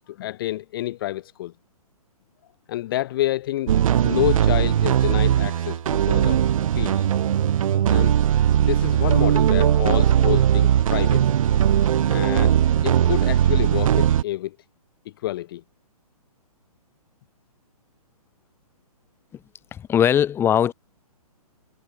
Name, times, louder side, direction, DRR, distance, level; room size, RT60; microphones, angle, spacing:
voice 1, 0.1-1.5 2.7-3.8 4.0-6.4 6.8-7.1 7.9-8.2 8.6-11.2 12.1-12.6 12.8-14.6 15.2-15.6, left 15 dB, 35° left, 0.6 m, -28 dB
sound 1, 3.7-14.2, right 10 dB, 60° right, 0.6 m, -19 dB
voice 2, 19.7-20.7, left 9 dB, 10° left, 1.2 m, -20 dB
hypercardioid pair, 150°, 20 cm